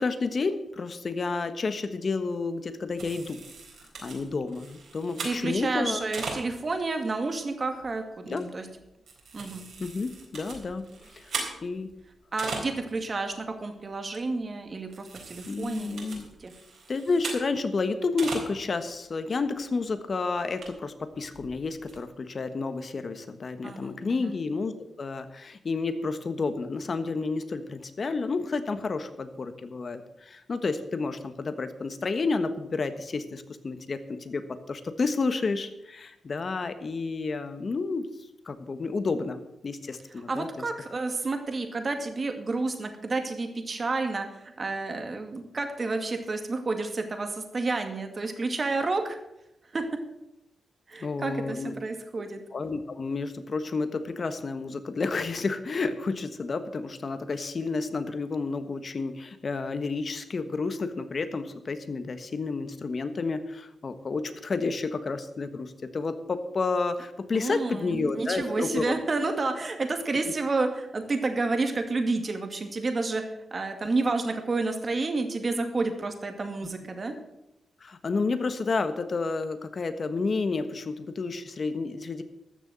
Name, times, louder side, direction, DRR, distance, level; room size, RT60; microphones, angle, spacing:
voice 1, 0.0-3.4 4.0-6.0 8.3-8.5 9.8-10.9 11.1-11.3 11.6-11.9 15.5-16.3 16.9-24.7 25.0-38.1 38.4-40.5 51.0-51.7 52.5-68.9 77.8-82.2, left 4 dB, 50° left, 10 dB, 1.3 m, -30 dB
sound 1, 3.0-6.8 7.4-7.5 7.8-7.9 8.3-8.4 8.8-13.0 13.3-13.4 13.7-13.8 14.1-14.5 14.9-17.7 17.9-18.5 18.9-19.0 19.4-19.5 19.8-19.9 20.4-22.0, right 4 dB, 75° right, 4.0 m, -39 dB
voice 2, 5.2-8.7 9.3-9.7 12.3-16.5 23.6-24.3 40.3-49.2 49.7-50.0 50.9-52.4 67.3-73.2 73.5-77.1, right 3 dB, 40° right, 6 dB, 2.1 m, -30 dB
14.0 x 6.8 x 7.6 m, 0.88 s
cardioid pair, 75°, 0 cm